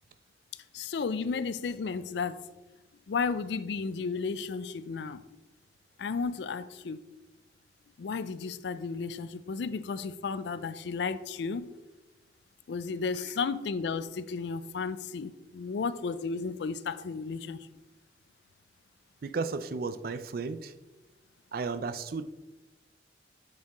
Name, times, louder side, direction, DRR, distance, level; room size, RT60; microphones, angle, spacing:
voice 1, 0.7-2.4 3.1-5.2 6.0-7.0 8.0-11.7 12.7-17.7, left 5 dB, 65° left, 0.4 m, -33 dB
voice 2, 19.2-20.7 21.5-22.2, right 4 dB, 50° right, 0.4 m, -34 dB
7.1 x 6.6 x 3.0 m
head